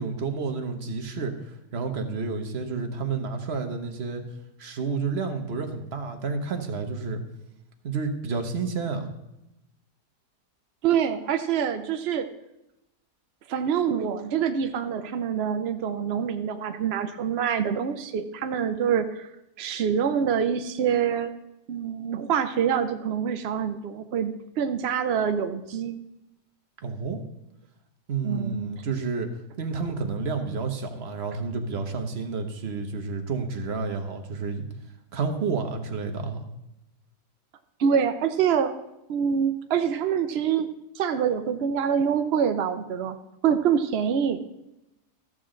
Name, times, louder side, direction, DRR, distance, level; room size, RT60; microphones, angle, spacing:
voice 1, 0.0-4.2 4.6-7.2 7.8-9.1 26.8-27.2 28.1-29.3 29.6-34.6 35.1-36.5, right 4 dB, 45° right, 5 dB, 1.2 m, -30 dB
voice 2, 10.8-12.3 13.5-19.3 19.6-21.3 21.7-26.0 28.2-28.8 37.8-38.7 39.1-43.2 43.4-44.4, right 7 dB, 75° right, 8 dB, 0.6 m, -25 dB
14.0 x 7.6 x 3.8 m, 0.90 s
omnidirectional pair, 1.8 m